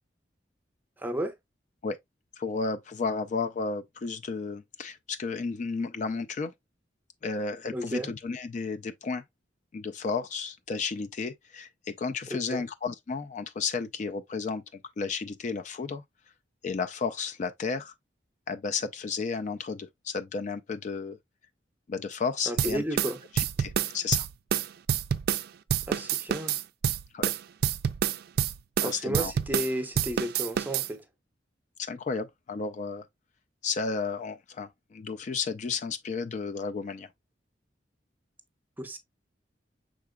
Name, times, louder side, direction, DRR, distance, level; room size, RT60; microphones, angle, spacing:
voice 1, 1.0-1.3 7.7-8.1 12.3-12.6 22.5-23.2 25.9-26.6 28.8-31.0 38.8-39.0, equal, 10° right, 0.6 m, -33 dB
voice 2, 2.4-6.5 7.2-9.2 9.7-14.6 15.0-16.0 16.6-17.9 18.5-21.2 21.9-22.8 23.3-24.3 27.1-27.3 28.8-29.3 31.8-33.0 33.6-37.1, left 4 dB, 45° left, 0.4 m, -33 dB
sound 1, 22.6-25.5 25.7-29.7 30.0-30.9, right 9 dB, 55° right, 0.3 m, -27 dB
5.8 x 3.8 x 2.2 m
head